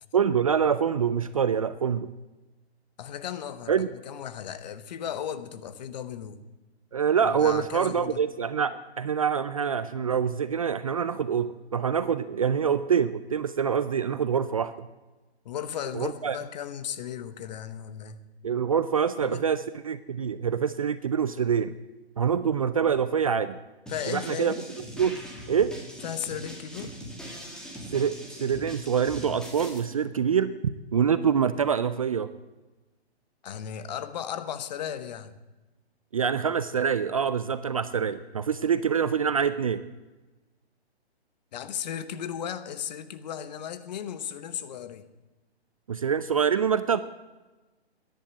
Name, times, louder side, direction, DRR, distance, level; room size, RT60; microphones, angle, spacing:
voice 1, 0.1-2.1 3.7-3.9 6.9-14.9 15.9-16.4 18.4-21.8 22.2-23.6 24.1-24.5 25.0-25.2 25.5-25.7 27.9-28.1 28.4-30.5 30.9-32.3 36.1-39.8 45.9-47.0, right 7 dB, 35° right, 14 dB, 0.4 m, -25 dB
voice 2, 3.0-3.8 4.0-6.4 7.2-8.2 11.7-11.8 15.4-18.2 19.2-19.5 23.9-24.6 26.0-26.9 33.4-35.3 41.5-45.0, left 9 dB, 40° left, 13 dB, 1.0 m, -35 dB
sound 1, 23.9-29.8, equal, ahead, 1.9 m, -41 dB
14.0 x 10.5 x 7.6 m, 1.2 s
hypercardioid pair, 145°, 33 cm